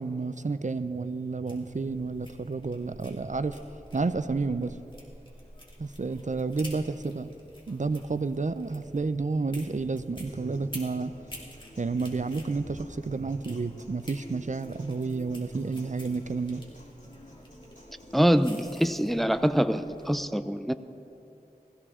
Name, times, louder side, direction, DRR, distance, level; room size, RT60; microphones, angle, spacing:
voice 1, 0.0-3.6 3.9-4.8 5.8-7.3 7.7-11.1 11.8-16.6, right 4 dB, 50° right, 12 dB, 0.5 m, -30 dB
sound 1, 1.5-20.2, equal, 30° left, 2.7 m, -49 dB
Human voice / Acoustic guitar, 10.2-18.2, left 1 dB, 50° left, 3.1 m, -52 dB
voice 2, 18.1-20.7, equal, ahead, 11 dB, 0.5 m, -24 dB
20.0 x 15.5 x 3.7 m, 2.9 s
wide cardioid pair, 40°, 16 cm